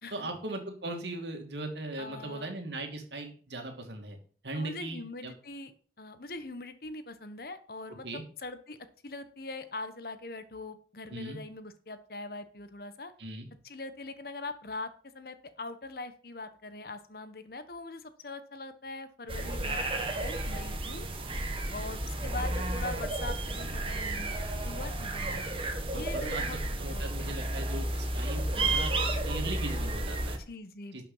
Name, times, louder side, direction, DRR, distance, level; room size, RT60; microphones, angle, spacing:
voice 1, 0.1-4.2 4.4-5.3 8.0-8.2 11.1-11.4 13.2-13.5 25.9-28.9 29.2-30.4 30.9-31.0, right 2 dB, 75° right, 4 dB, 2.5 m, -39 dB
voice 2, 2.0-2.5 4.5-5.7 6.0-8.8 9.0-13.1 13.6-21.1 21.7-24.4 24.6-25.5 25.9-26.6 26.9-27.3 28.5-28.8 30.4-31.0, left 2 dB, 55° left, 11 dB, 1.2 m, -42 dB
sound 1, 19.3-30.4, right 2 dB, 30° right, 1.5 m, -32 dB
11.5 x 6.1 x 5.6 m, 0.42 s
head